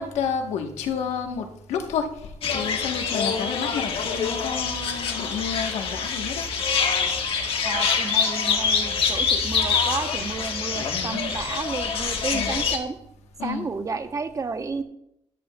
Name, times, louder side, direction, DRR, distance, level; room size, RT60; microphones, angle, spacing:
voice 1, 0.0-6.5 10.7-11.2 12.3-12.5 13.4-13.7, left 6 dB, 90° left, 4 dB, 1.2 m, -30 dB
sound 1, 2.4-12.8, left 5 dB, 55° left, 1.6 m, -25 dB
voice 2, 7.6-13.0 13.4-14.8, right 4 dB, 30° right, 8 dB, 0.9 m, -31 dB
13.0 x 9.3 x 2.3 m, 0.78 s
cardioid pair, 95°, 11 cm